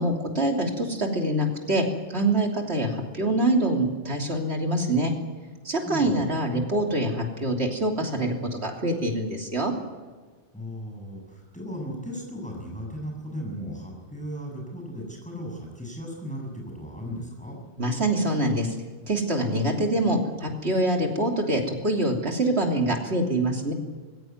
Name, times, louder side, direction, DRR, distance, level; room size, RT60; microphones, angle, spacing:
voice 1, 0.0-5.1 5.6-8.3 8.6-9.7 17.8-18.7 19.1-23.7, right 1 dB, 75° right, 2 dB, 3.4 m, -25 dB
voice 2, 5.9-6.2 10.5-17.6, equal, 5° left, 0 dB, 7.2 m, -36 dB
20.5 x 16.5 x 9.5 m, 1.4 s
omnidirectional pair, 1.1 m